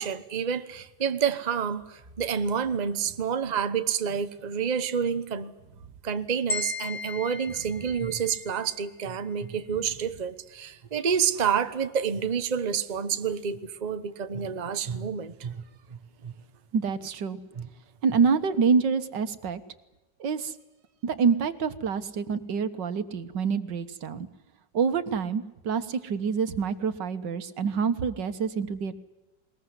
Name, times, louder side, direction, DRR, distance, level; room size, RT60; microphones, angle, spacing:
voice 1, 0.0-5.5 6.0-15.6 15.9-16.3 17.5-17.7, right 7 dB, 30° right, 10 dB, 1.1 m, -29 dB
sound 1, 6.5-8.7, left 3 dB, 70° left, 6.7 m, -35 dB
voice 2, 16.7-17.4 18.0-19.6 20.2-20.5 21.0-24.3 24.7-29.0, right 6 dB, 75° right, 11 dB, 2.0 m, -26 dB
21.0 x 20.5 x 9.7 m, 1.0 s
omnidirectional pair, 1.9 m